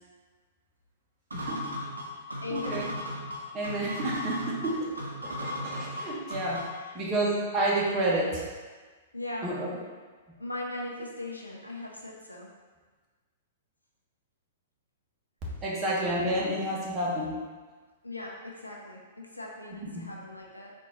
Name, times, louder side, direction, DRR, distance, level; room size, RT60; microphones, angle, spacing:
voice 1, 1.3-1.7 2.5-3.0 3.5-4.9 5.2-6.7 6.9-8.4 9.4-9.8 15.6-17.4 19.7-19.9, right 1 dB, 25° right, -5 dB, 1.1 m, -30 dB
sound 1, 1.3-6.9, left 1 dB, 80° right, 0.6 m, -36 dB
voice 2, 2.4-2.9 5.2-5.3 6.7-7.0 9.1-9.5 10.4-12.5 18.0-20.7, left 2 dB, 90° left, -2 dB, 0.6 m, -39 dB
4.0 x 2.7 x 3.7 m, 1.4 s
figure-of-eight pair, 105°, 0 cm